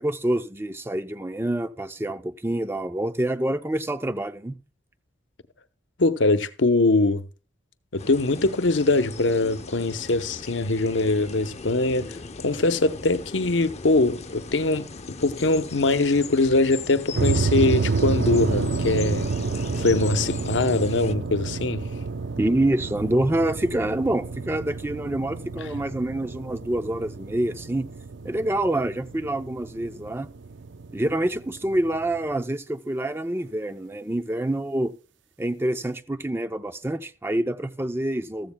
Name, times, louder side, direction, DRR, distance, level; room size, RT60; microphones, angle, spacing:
voice 1, 0.0-4.6 22.4-27.9 28.2-30.3 30.9-35.0 35.4-38.5, right 1 dB, 15° right, 0.5 m, -26 dB
voice 2, 6.0-7.2 7.9-19.3 19.8-21.8, left 2 dB, 75° left, 0.9 m, -22 dB
sound 1, 8.0-21.1, left 4 dB, 35° left, 0.7 m, -39 dB
sound 2, 17.1-32.4, right 4 dB, 75° right, 0.6 m, -30 dB
14.5 x 14.0 x 2.2 m
head